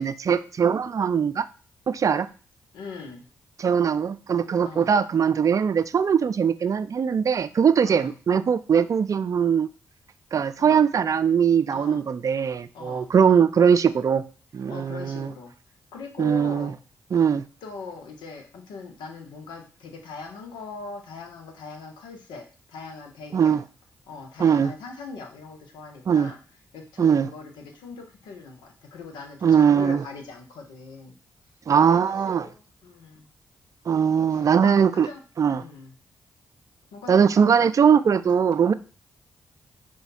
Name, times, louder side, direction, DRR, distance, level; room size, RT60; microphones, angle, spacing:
voice 1, 0.0-1.4 1.9-2.3 3.6-9.7 10.3-14.2 14.5-15.3 16.2-16.7 17.1-17.4 23.3-23.6 24.4-24.7 26.1-26.3 27.0-27.3 29.4-30.0 31.7-32.5 33.9-35.1 35.4-35.6 37.1-38.7, right 7 dB, 45° right, 13 dB, 0.4 m, -21 dB
voice 2, 2.7-3.3 4.6-4.9 7.8-8.1 10.6-10.8 11.7-12.1 12.7-13.1 14.7-15.5 15.9-16.8 17.6-23.6 24.1-26.4 26.7-31.2 31.9-33.3 34.3-35.2 35.5-35.9 36.9-37.9, left 4 dB, 80° left, 4 dB, 0.8 m, -41 dB
5.0 x 2.3 x 4.1 m, 0.38 s
hypercardioid pair, 40°, 8 cm